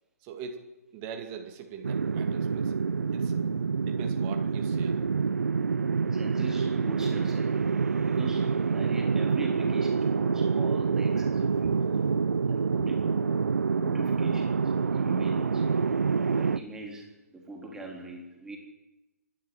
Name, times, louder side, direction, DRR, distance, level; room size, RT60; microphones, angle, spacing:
voice 1, 0.2-0.6 0.9-2.8 3.1-3.3 3.8-5.0 11.6-11.7, right 6 dB, 30° right, 4 dB, 2.4 m, -41 dB
sound 1, 1.8-16.6, right 5 dB, 70° right, 0.8 m, -27 dB
voice 2, 6.0-12.2 12.5-13.5 13.8-15.7 16.3-18.6, right 2 dB, 5° right, 0 dB, 3.5 m, -43 dB
27.0 x 12.5 x 7.8 m, 1.0 s
figure-of-eight pair, 125°, 9 cm